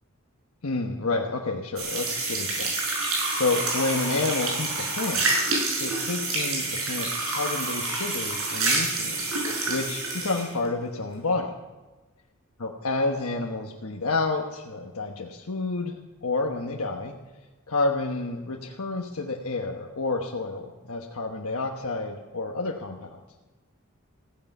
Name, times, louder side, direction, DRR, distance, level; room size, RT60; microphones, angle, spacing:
voice 1, 0.6-3.0 3.3-5.4 5.8-9.3 9.7-11.5 12.6-17.1 17.7-23.2, left 3 dB, 85° left, 1 dB, 1.3 m, -29 dB
sound 1, 1.8-10.5, right 3 dB, 70° right, 5.8 m, -28 dB
15.5 x 15.0 x 5.5 m, 1.2 s
head